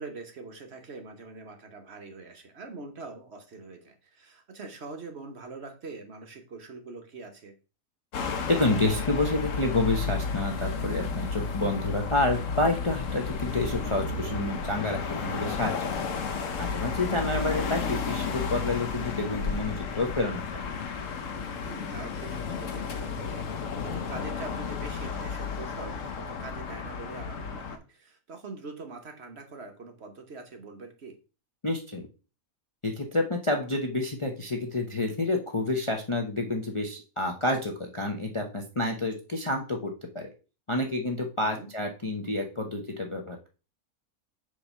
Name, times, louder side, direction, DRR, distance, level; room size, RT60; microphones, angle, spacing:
voice 1, 0.0-7.5 17.1-17.5 21.6-31.2 41.4-41.7, right 3 dB, 50° right, 5 dB, 1.1 m, -43 dB
sound 1, 8.1-27.8, left 5 dB, 65° left, 1.1 m, -32 dB
voice 2, 8.5-15.7 16.0-16.1 16.6-20.6 31.6-32.1 32.8-40.3 40.7-43.5, left 2 dB, 30° left, 2 dB, 0.7 m, -29 dB
7.0 x 3.2 x 5.3 m, 0.34 s
omnidirectional pair, 1.5 m